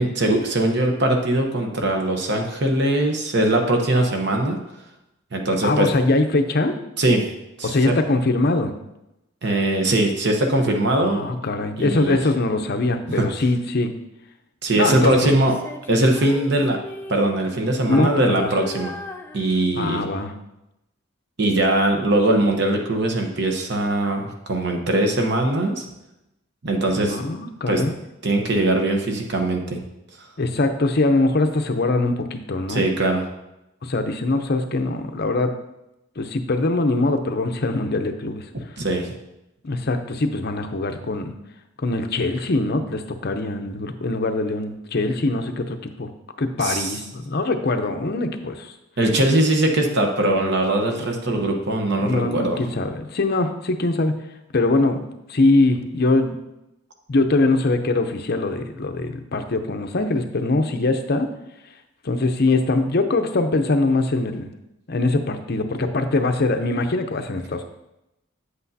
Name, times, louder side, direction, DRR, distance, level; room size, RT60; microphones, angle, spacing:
voice 1, 0.0-4.6 5.3-5.9 7.0-7.2 7.6-7.9 9.4-11.2 11.8-12.2 13.1-13.3 14.6-15.5 15.9-16.8 17.1-18.9 19.3-20.0 21.4-25.9 26.6-27.2 27.7-27.8 28.2-29.8 32.7-33.2 38.8-39.1 46.6-46.9 49.0-52.6, right 1 dB, 55° right, 3 dB, 0.9 m, -21 dB
voice 2, 5.6-6.8 7.6-8.7 10.9-13.9 14.7-15.3 17.9-18.5 19.8-20.3 27.1-28.0 30.4-32.9 33.8-35.6 36.2-38.4 39.6-41.3 41.8-46.1 46.4-48.7 52.0-54.2 54.5-56.4 57.1-61.3 62.0-64.5 64.9-67.6, left 2 dB, 50° left, 7 dB, 0.6 m, -22 dB
Female singing, 15.4-17.6 17.9-20.0, left 2 dB, 10° left, 0.3 m, -36 dB
8.1 x 7.9 x 2.7 m, 0.89 s
head